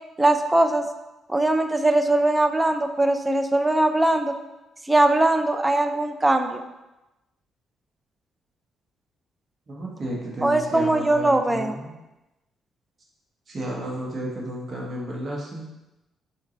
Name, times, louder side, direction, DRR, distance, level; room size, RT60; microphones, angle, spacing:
voice 1, 0.2-0.8 1.3-4.3 4.9-6.6 10.4-11.8, right 2 dB, 15° right, 7 dB, 0.4 m, -21 dB
voice 2, 9.7-11.9 13.5-15.7, right 1 dB, 40° right, -3 dB, 1.2 m, -32 dB
4.3 x 3.8 x 3.2 m, 1.0 s
cardioid pair, 90°, 0 cm